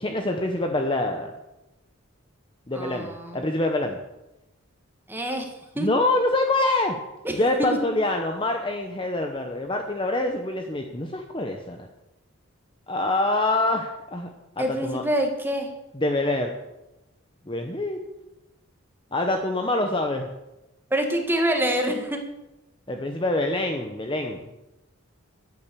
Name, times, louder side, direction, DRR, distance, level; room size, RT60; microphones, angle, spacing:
voice 1, 0.0-1.3 2.7-4.0 5.8-7.0 7.3-11.9 12.9-14.3 14.6-15.0 15.9-16.5 17.5-18.0 19.1-20.3 22.9-24.4, left 2 dB, 25° left, 4 dB, 0.9 m, -25 dB
voice 2, 2.7-3.4 5.1-5.5 5.7-5.9 7.2-7.8 14.6-15.7 20.9-22.2, right 1 dB, 10° right, 3 dB, 1.6 m, -26 dB
13.0 x 9.0 x 6.9 m, 0.98 s
head